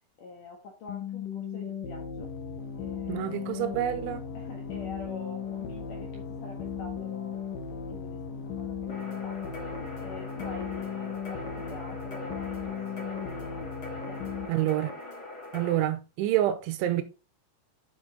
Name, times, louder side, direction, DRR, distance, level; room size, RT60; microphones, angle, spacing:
voice 1, 0.2-2.3 2.8-3.6 4.3-7.5 7.9-9.6 10.0-13.7 14.0-14.7, left 3 dB, 65° left, 2.1 m, -46 dB
sound 1, 0.9-14.5, left 7 dB, 85° left, 1.9 m, -36 dB
voice 2, 3.1-4.2 14.5-14.9 15.5-17.0, right 13 dB, 80° right, 3.0 m, -27 dB
sound 2, 8.9-15.8, left 2 dB, 35° left, 2.3 m, -42 dB
8.0 x 7.7 x 3.8 m
omnidirectional pair, 5.8 m